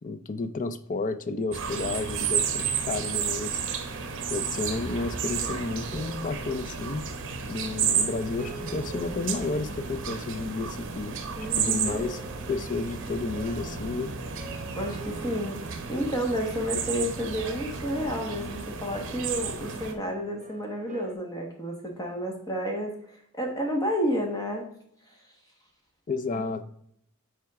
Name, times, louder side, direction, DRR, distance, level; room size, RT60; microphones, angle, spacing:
voice 1, 0.0-3.6 4.3-7.1 7.4-11.2 11.6-12.2 12.5-14.1 26.1-26.6, left 3 dB, 35° left, 11 dB, 0.5 m, -31 dB
sound 1, 1.5-19.9, right 6 dB, 60° right, 0.9 m, -32 dB
sound 2, 3.6-10.8 11.4-21.1, right 2 dB, 35° right, 1.0 m, -47 dB
voice 2, 11.4-11.9 14.7-24.7 26.3-26.6, equal, 15° left, 1 dB, 1.2 m, -31 dB
7.6 x 4.6 x 3.5 m, 0.69 s
head